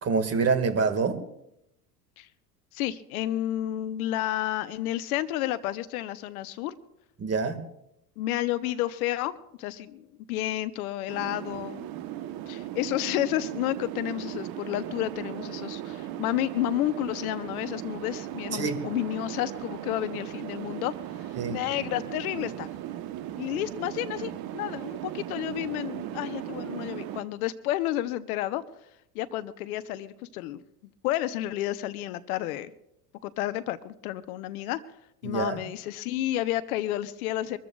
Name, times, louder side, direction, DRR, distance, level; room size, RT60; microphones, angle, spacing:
voice 1, 0.0-1.2 7.2-7.6 18.5-18.8 21.4-21.6 35.2-35.6, right 5 dB, 30° right, 9 dB, 2.0 m, -26 dB
voice 2, 2.7-6.8 8.2-9.3 9.6-11.9 12.5-20.9 21.2-22.7 23.4-28.6 29.1-30.6 31.0-32.7 33.2-34.8 35.2-37.6, left 14 dB, 65° left, 14 dB, 0.9 m, -31 dB
sound 1, 11.1-27.2, right 12 dB, 50° right, 1.1 m, -37 dB
24.5 x 13.5 x 2.4 m, 0.81 s
hypercardioid pair, 80°, 46 cm